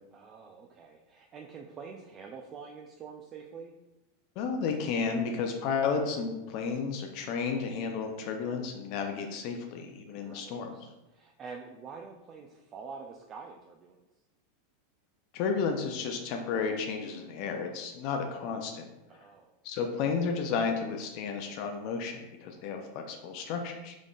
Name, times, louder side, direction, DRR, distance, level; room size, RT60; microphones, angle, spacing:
voice 1, 0.1-3.7 10.1-14.0 19.1-19.5, right 5 dB, 35° right, 1 dB, 0.4 m, -46 dB
voice 2, 4.4-10.7 15.3-18.8 19.6-23.9, left 5 dB, 50° left, 4 dB, 0.5 m, -32 dB
3.6 x 3.6 x 2.4 m, 0.98 s
hypercardioid pair, 90°, 0 cm